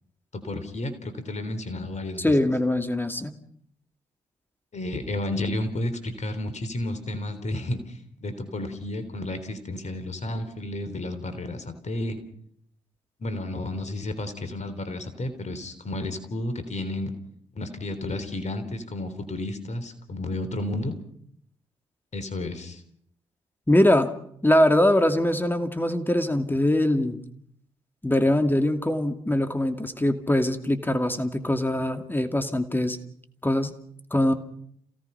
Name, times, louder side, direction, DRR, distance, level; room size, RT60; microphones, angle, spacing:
voice 1, 0.3-2.3 4.7-12.2 13.2-17.1 17.6-20.9 22.1-22.8, left 1 dB, 50° left, 10 dB, 3.6 m, -32 dB
voice 2, 2.2-3.3 23.7-24.2 24.4-27.2 28.0-33.0 33.4-33.7 34.1-34.3, left 1 dB, 15° left, 7 dB, 2.4 m, -22 dB
28.5 x 17.0 x 5.7 m, 0.66 s
hypercardioid pair, 40°, 15 cm